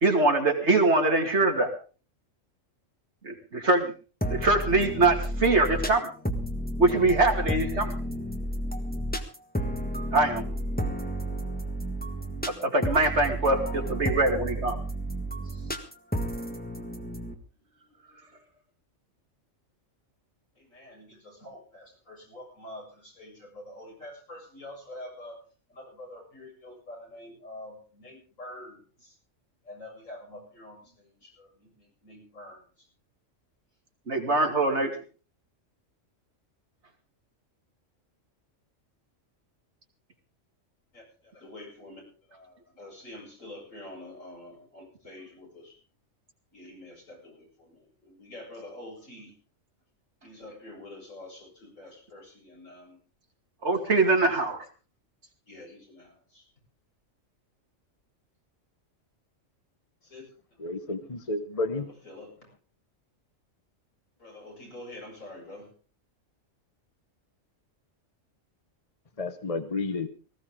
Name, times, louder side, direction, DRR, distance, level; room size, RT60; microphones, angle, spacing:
voice 1, 0.0-1.7 3.2-3.9 4.3-6.1 6.8-7.9 10.1-10.4 12.4-14.8 34.1-35.0 53.6-54.6, right 2 dB, 60° right, 3 dB, 2.7 m, -23 dB
sound 1, 4.2-17.3, equal, 5° left, 1.5 m, -32 dB
voice 2, 20.6-25.4 25.7-29.2 29.6-32.9 40.9-45.8 46.5-49.4 50.2-53.0 54.1-54.2 55.5-56.5 60.0-60.3 61.2-61.3 61.7-62.5 64.2-65.7, left 1 dB, 80° left, -1 dB, 7.9 m, -46 dB
voice 3, 60.6-61.9 69.2-70.1, left 3 dB, 30° left, 10 dB, 1.0 m, -31 dB
19.0 x 15.5 x 3.7 m, 0.36 s
omnidirectional pair, 1.3 m